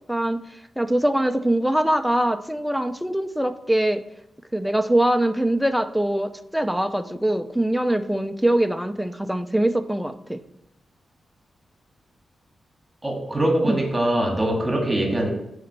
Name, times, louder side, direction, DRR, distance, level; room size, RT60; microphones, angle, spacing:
voice 1, 0.1-0.4 0.8-4.0 4.5-10.4 13.7-13.8, right 1 dB, ahead, 8 dB, 0.6 m, -23 dB
voice 2, 13.0-15.3, right 1 dB, 20° right, 0 dB, 2.1 m, -23 dB
9.0 x 4.4 x 6.8 m, 0.82 s
cardioid pair, 85°, 0 cm